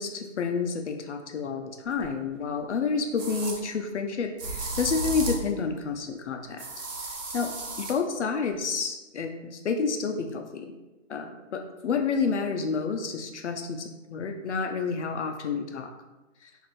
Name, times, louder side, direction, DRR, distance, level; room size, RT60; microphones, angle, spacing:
voice 1, 0.0-6.6 7.3-10.7 11.1-15.9 16.4-16.5, left 5 dB, 65° left, 5 dB, 0.5 m, -29 dB
sound 1, 2.0-2.1 3.2-3.6 4.4-5.5 6.6-8.0, right 3 dB, 80° right, 0.9 m, -34 dB
4.1 x 2.6 x 3.0 m, 1.1 s
hypercardioid pair, 170°, 38 cm